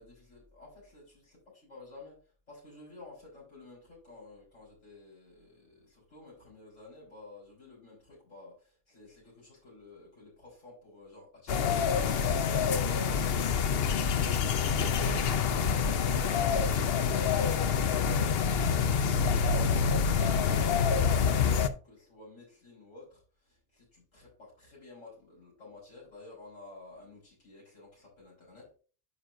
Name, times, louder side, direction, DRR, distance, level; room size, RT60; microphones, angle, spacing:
voice 1, 0.0-1.4 1.6-2.2 2.5-14.0 14.7-28.7, left 2 dB, 75° left, -7 dB, 4.7 m, -52 dB
sound 1, 11.5-21.7, left 6 dB, 60° left, 0.8 m, -27 dB
9.7 x 6.2 x 2.6 m, 0.38 s
omnidirectional pair, 1.3 m